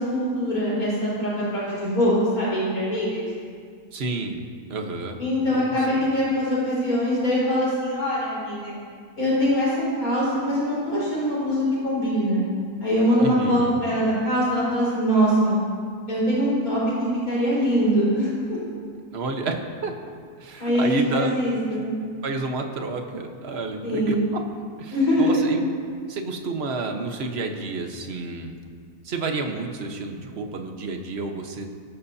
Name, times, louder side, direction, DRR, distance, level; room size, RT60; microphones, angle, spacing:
voice 1, 0.0-3.3 5.2-8.7 9.2-12.4 12.8-15.5 16.1-18.6 20.6-21.9 23.8-24.2 24.9-25.5, equal, 60° left, -9 dB, 5.1 m, -23 dB
voice 2, 3.9-4.4 4.7-5.2 5.5-6.0 13.2-13.8 19.1-20.1 20.4-21.3 22.2-24.4 24.8-25.6 26.1-28.5 29.0-31.7, right 3 dB, 45° right, 4 dB, 1.3 m, -30 dB
24.5 x 12.5 x 2.8 m, 2.1 s
omnidirectional pair, 1.7 m